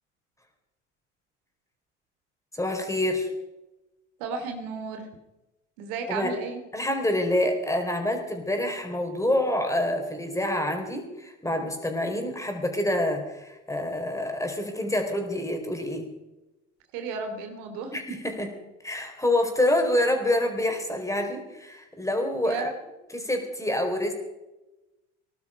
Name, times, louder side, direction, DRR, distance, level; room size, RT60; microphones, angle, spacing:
voice 1, 2.5-3.3 6.1-6.3 6.7-16.1 17.9-18.5 18.8-22.7 23.1-24.1, left 1 dB, 10° left, 4 dB, 4.6 m, -27 dB
voice 2, 4.2-5.1 5.8-6.6 16.9-17.9 22.4-22.7, right 4 dB, 65° right, 6 dB, 2.8 m, -33 dB
20.0 x 12.0 x 5.2 m, 1.0 s
hypercardioid pair, 75°, 36 cm